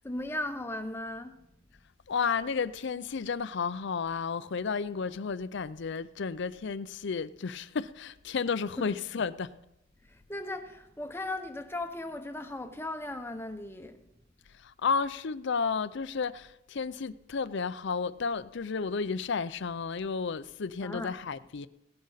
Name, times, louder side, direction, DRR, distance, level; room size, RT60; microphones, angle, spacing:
voice 1, 0.0-1.5 8.8-8.9 10.0-14.1 20.8-21.2, left 1 dB, 10° left, 0.9 m, -37 dB
voice 2, 2.1-9.5 14.5-21.7, left 5 dB, 60° left, 0.5 m, -32 dB
17.5 x 10.5 x 4.1 m
head